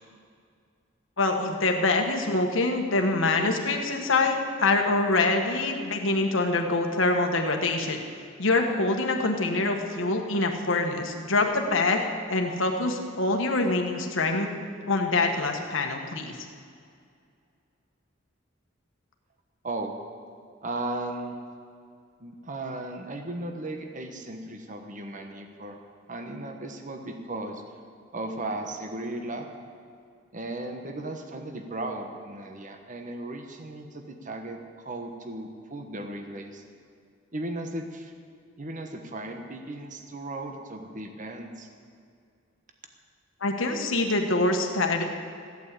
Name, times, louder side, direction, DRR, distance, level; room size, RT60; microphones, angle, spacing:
voice 1, 1.2-8.0 8.4-12.0 12.3-14.5 14.9-16.4 43.4-45.0, left 2 dB, 75° left, 3 dB, 1.5 m, -25 dB
voice 2, 20.6-21.4 22.2-25.8 26.1-27.6 28.1-29.5 30.3-36.6 37.3-38.1 38.6-41.7, right 2 dB, 40° right, 4 dB, 1.2 m, -36 dB
14.5 x 8.5 x 8.4 m, 2.3 s
head